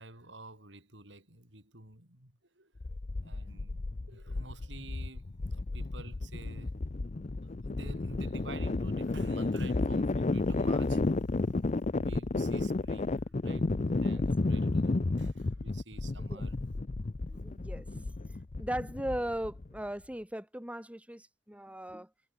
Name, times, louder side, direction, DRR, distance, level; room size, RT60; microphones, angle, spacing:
voice 1, 0.0-2.7 3.2-7.0 7.4-11.3 11.9-16.5, right 2 dB, 75° right, 7.0 m, -50 dB
sound 1, 2.8-19.8, left 2 dB, 40° left, 0.6 m, -32 dB
voice 2, 13.9-14.3 16.2-16.4 17.3-18.1 18.6-22.1, right 1 dB, 5° right, 3.2 m, -38 dB
head